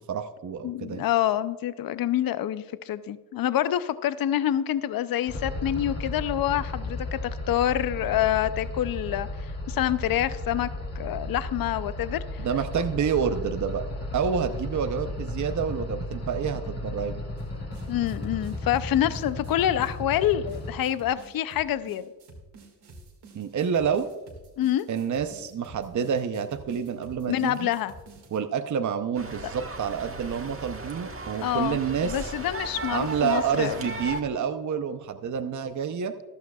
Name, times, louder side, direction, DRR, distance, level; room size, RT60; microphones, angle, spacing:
voice 1, 0.1-1.0 12.4-13.8 14.1-17.2 23.3-24.1 24.9-27.7 28.3-32.3 32.9-36.1, right 7 dB, 50° right, 8 dB, 0.7 m, -28 dB
voice 2, 0.6-10.7 11.0-12.4 17.9-22.0 24.6-24.9 27.3-27.9 31.4-31.8 32.0-33.8, left 11 dB, 65° left, 14 dB, 0.5 m, -27 dB
sound 1, 5.3-20.8, left 2 dB, 40° left, 2.2 m, -35 dB
sound 2, 17.4-28.4, right 2 dB, 90° right, 2.1 m, -49 dB
sound 3, 29.1-34.2, right 2 dB, 35° right, 1.5 m, -36 dB
14.5 x 12.0 x 2.3 m, 1.2 s
cardioid pair, 75°, 38 cm